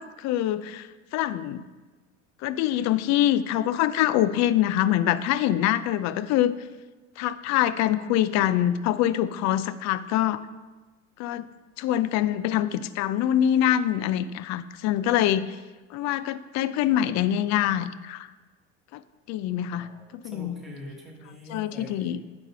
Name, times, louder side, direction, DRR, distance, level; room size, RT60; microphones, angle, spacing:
voice 1, 0.0-1.6 2.4-6.5 7.2-10.4 11.2-11.5 11.8-15.6 15.9-18.3 18.9-19.0 19.3-19.9 20.2-20.5 21.5-22.2, left 12 dB, 45° left, 15 dB, 0.5 m, -24 dB
voice 2, 19.7-22.2, equal, ahead, -3 dB, 2.5 m, -44 dB
9.2 x 5.3 x 5.5 m, 1.2 s
hypercardioid pair, 75°, 39 cm